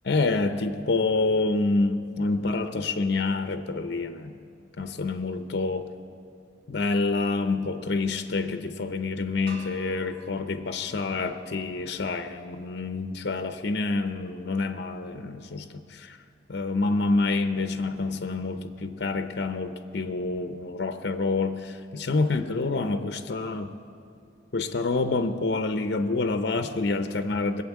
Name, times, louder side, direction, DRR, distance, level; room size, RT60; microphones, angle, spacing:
voice 1, 0.1-4.3 4.8-5.9 6.7-16.2 16.5-23.8 24.5-27.6, left 3 dB, 60° left, 9 dB, 0.7 m, -27 dB
sound 1, 9.5-12.4, right 2 dB, 90° right, 3.9 m, -49 dB
20.5 x 8.6 x 7.3 m, 2.4 s
head